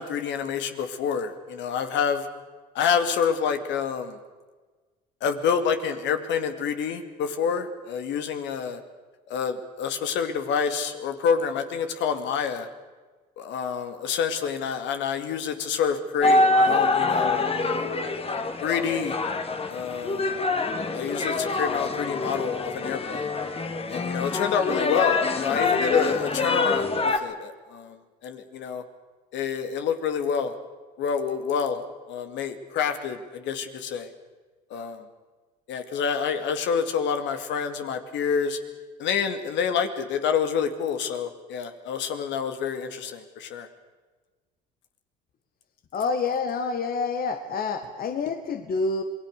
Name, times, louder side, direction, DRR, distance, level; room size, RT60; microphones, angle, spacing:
voice 1, 0.0-2.2 2.8-4.2 5.2-8.8 9.3-12.7 13.4-17.9 18.6-19.2 19.7-20.3 20.9-23.3 23.9-27.9 28.2-28.8 29.3-30.5 31.0-31.8 32.1-34.1 34.7-35.0 35.7-38.6 39.0-43.7, left 7 dB, 65° left, 7 dB, 2.4 m, -27 dB
sound 1, 16.2-27.2, left 3 dB, 30° left, 2.1 m, -25 dB
voice 2, 45.9-49.0, left 4 dB, 50° left, 7 dB, 1.8 m, -27 dB
27.0 x 20.0 x 6.7 m, 1.3 s
supercardioid pair, 80°, 20 cm